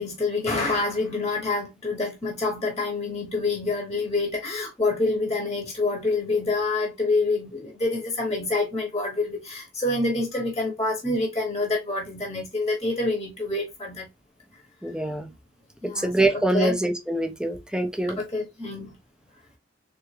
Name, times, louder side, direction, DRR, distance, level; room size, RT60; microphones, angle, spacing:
voice 1, 0.0-14.1 15.8-16.8 18.2-19.0, left 3 dB, 20° left, 1.0 m, -27 dB
voice 2, 14.8-15.3 16.0-18.2, right 1 dB, 5° right, 0.5 m, -24 dB
3.5 x 3.4 x 3.2 m
head